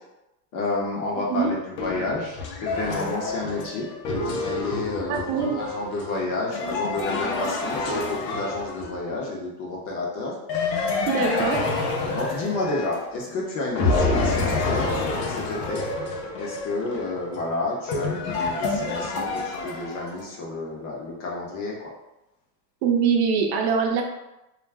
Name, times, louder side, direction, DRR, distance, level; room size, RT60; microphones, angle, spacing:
voice 1, 0.5-5.2 5.5-10.4 10.7-11.0 11.3-15.8 16.3-21.9, left 2 dB, 40° left, -2 dB, 0.7 m, -30 dB
sound 1, 1.8-9.2 10.5-13.3 13.8-20.2, left 3 dB, 85° left, 0.7 m, -28 dB
voice 2, 5.1-5.6 11.1-11.6 22.8-24.0, right 6 dB, 60° right, 2 dB, 0.6 m, -23 dB
2.4 x 2.0 x 3.3 m, 0.94 s
supercardioid pair, 135°, 49 cm